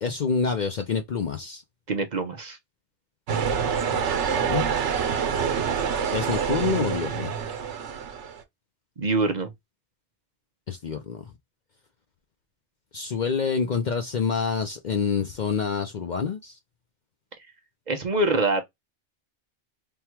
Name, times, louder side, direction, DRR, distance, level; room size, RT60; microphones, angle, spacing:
voice 1, 0.0-1.6 3.9-4.7 6.1-7.3 10.7-11.3 12.9-16.6, left 5 dB, 50° left, 0.6 m, -27 dB
voice 2, 1.9-2.6 9.0-9.5 17.9-18.6, right 2 dB, 45° right, 0.7 m, -24 dB
sound 1, 3.3-8.4, right 7 dB, 80° right, 1.1 m, -26 dB
3.6 x 2.3 x 4.4 m
omnidirectional pair, 1.2 m